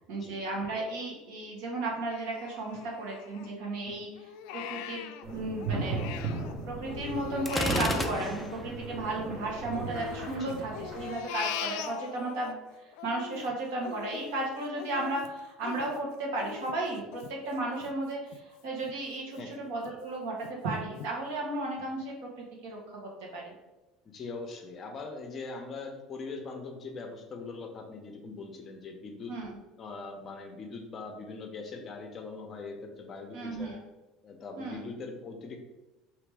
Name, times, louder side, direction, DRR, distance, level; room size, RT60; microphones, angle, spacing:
voice 1, 0.1-4.1 4.5-6.0 6.7-12.6 13.0-23.5 29.3-29.6 33.3-33.8 34.6-34.8, right 2 dB, 80° right, -2 dB, 1.4 m, -34 dB
Crying sobbing, 2.1-3.8 4.2-6.5 6.9-9.3 9.7-12.5 12.9-18.4 18.8-18.9 19.4-19.9 20.4-20.5 21.0-21.1, left 10 dB, 75° left, 0.3 m, -41 dB
sound 1, 5.2-11.1, right 2 dB, 30° right, 1.1 m, -36 dB
Gunshot gunfire, 7.5-8.7, equal, ahead, 0.3 m, -31 dB
voice 2, 24.0-29.3 29.8-33.8 34.2-35.6, left 4 dB, 30° left, 3 dB, 0.7 m, -41 dB
4.8 x 3.0 x 3.4 m, 1.1 s
cardioid pair, 140°, 0 cm